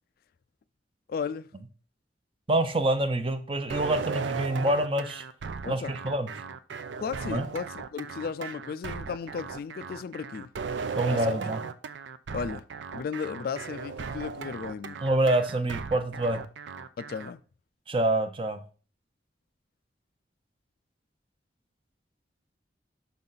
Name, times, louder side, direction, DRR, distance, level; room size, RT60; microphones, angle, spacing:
voice 1, 1.1-1.5 5.6-5.9 7.0-10.5 11.1-11.4 12.3-12.6 12.9-15.0 17.0-17.4, left 6 dB, 55° left, 0.3 m, -35 dB
voice 2, 2.5-5.2 5.7-6.3 7.3-7.5 11.0-11.6 15.0-16.4 17.9-18.6, right 1 dB, 30° right, 0.6 m, -26 dB
sound 1, 3.7-17.3, right 5 dB, 85° right, 0.5 m, -36 dB
5.6 x 3.9 x 5.6 m
head